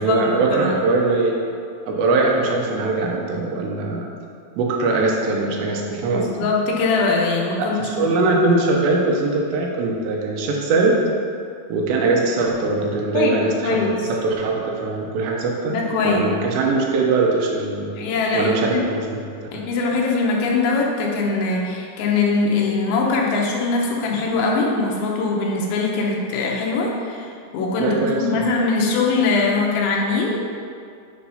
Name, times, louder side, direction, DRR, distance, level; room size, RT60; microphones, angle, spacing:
voice 1, 0.0-1.3 1.9-4.1 4.6-6.5 7.6-11.0 11.7-17.9 18.3-19.2 19.5-19.6 27.8-28.4, right 3 dB, 80° right, 0 dB, 2.8 m, -21 dB
voice 2, 6.1-8.1 13.1-14.0 15.7-16.2 18.0-18.9 19.5-30.4, left 3 dB, 85° left, -1 dB, 3.3 m, -22 dB
8.2 x 3.5 x 5.5 m, 2.3 s
omnidirectional pair, 5.2 m